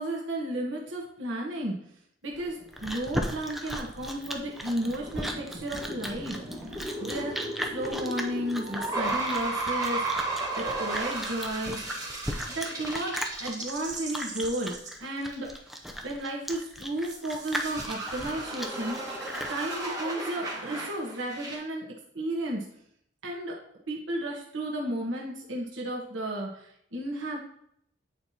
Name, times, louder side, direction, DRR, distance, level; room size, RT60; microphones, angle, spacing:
voice 1, 0.0-1.8 2.2-6.4 7.0-7.3 7.6-10.1 10.6-11.8 12.5-15.5 16.0-21.8 22.1-22.7 23.2-23.5 23.9-27.4, right 1 dB, 80° right, -1 dB, 1.2 m, -33 dB
Chewing mastication, 2.3-19.6, equal, ahead, 0.5 m, -37 dB
sound 1, 2.4-2.9 3.2-3.3 3.7-3.8 4.1-14.9 15.3-15.4 17.0-21.6, right 2 dB, 20° right, 1.5 m, -35 dB
8.7 x 4.5 x 2.8 m, 0.68 s
head